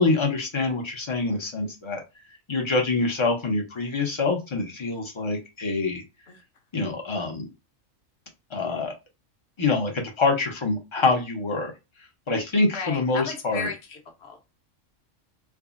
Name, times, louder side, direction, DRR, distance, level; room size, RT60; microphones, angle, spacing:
voice 1, 0.0-2.0 2.5-6.0 6.7-7.5 8.5-8.9 9.6-11.7 12.3-13.7, left 3 dB, 35° left, 2 dB, 0.5 m, -25 dB
voice 2, 12.7-14.4, left 5 dB, 60° left, 4 dB, 0.9 m, -34 dB
3.5 x 2.0 x 2.4 m, 0.25 s
omnidirectional pair, 1.3 m